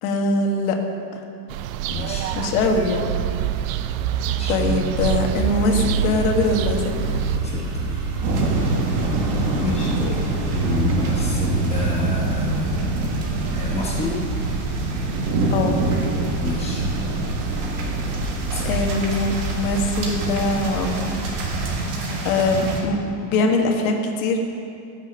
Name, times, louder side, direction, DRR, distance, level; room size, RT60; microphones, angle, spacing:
voice 1, 0.0-0.8 2.3-3.1 4.5-7.2 9.5-10.1 15.5-15.8 18.6-21.1 22.2-24.4, left 2 dB, 65° left, 2 dB, 1.6 m, -22 dB
sound 1, 1.5-7.4, right 10 dB, 60° right, 0.6 m, -26 dB
voice 2, 1.9-2.3 4.3-4.6 7.4-7.6 9.5-9.9 10.5-12.6 13.6-14.2 16.4-16.8 18.5-18.8, left 3 dB, 15° left, -3 dB, 0.9 m, -27 dB
sound 2, 5.0-21.8, right 4 dB, 90° right, 1.8 m, -28 dB
sound 3, 8.2-22.8, right 2 dB, 35° right, 1.5 m, -26 dB
16.0 x 6.3 x 6.6 m, 2.5 s
supercardioid pair, 180°, 46 cm